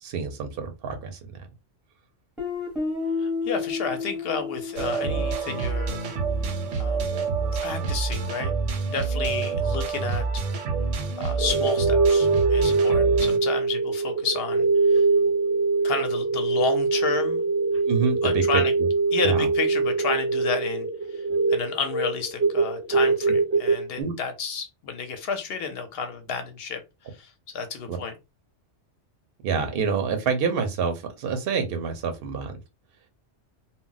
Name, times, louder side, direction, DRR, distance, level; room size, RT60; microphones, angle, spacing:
voice 1, 0.0-1.5 17.9-18.9 19.2-19.5 24.0-24.1 27.9-28.0 29.4-32.6, right 5 dB, 60° right, 5 dB, 0.7 m, -27 dB
Guitar, 2.4-7.1, left 4 dB, ahead, 0.7 m, -32 dB
voice 2, 3.2-6.0 6.7-7.2 7.6-8.5 8.9-10.2 11.2-15.0 15.8-17.4 18.2-18.7 19.1-26.8 27.1-28.1, left 5 dB, 65° left, 7 dB, 0.7 m, -31 dB
sound 1, 4.8-13.4, right 5 dB, 85° right, 0.9 m, -27 dB
sound 2, 11.4-23.8, right 3 dB, 25° right, 0.3 m, -23 dB
2.1 x 2.0 x 3.7 m, 0.26 s
omnidirectional pair, 1.2 m